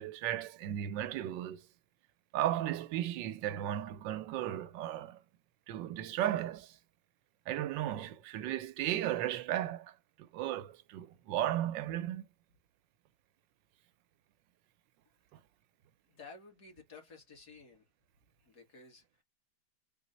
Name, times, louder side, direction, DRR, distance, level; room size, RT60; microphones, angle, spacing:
voice 1, 0.0-1.6 2.3-5.2 5.7-6.8 7.5-9.9 10.2-12.3 15.3-15.4, right 12 dB, 85° right, 1.3 m, -35 dB
voice 2, 16.1-17.9 18.4-19.2, left 4 dB, 60° left, 2.6 m, -54 dB
4.5 x 3.0 x 3.9 m
omnidirectional pair, 2.0 m